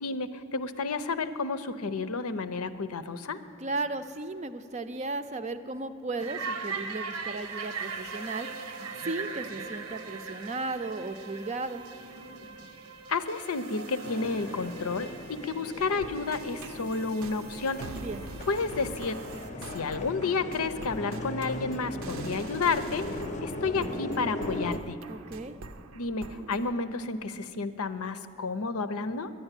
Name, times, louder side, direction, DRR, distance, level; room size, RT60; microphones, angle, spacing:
voice 1, 0.0-3.4 13.1-17.8 18.5-19.2 19.7-23.1 23.4-25.0 25.9-29.3, left 4 dB, 85° left, 11 dB, 0.7 m, -31 dB
voice 2, 3.6-8.5 9.0-11.8 17.9-18.2 25.1-25.6, right 2 dB, 30° right, 10 dB, 0.5 m, -35 dB
sound 1, 6.2-19.5, right 5 dB, 90° right, 1.0 m, -41 dB
sound 2, 14.0-24.8, left 1 dB, 35° left, 0.6 m, -38 dB
sound 3, 15.8-26.7, right 3 dB, 70° right, 0.6 m, -45 dB
10.5 x 10.0 x 9.8 m, 2.6 s
head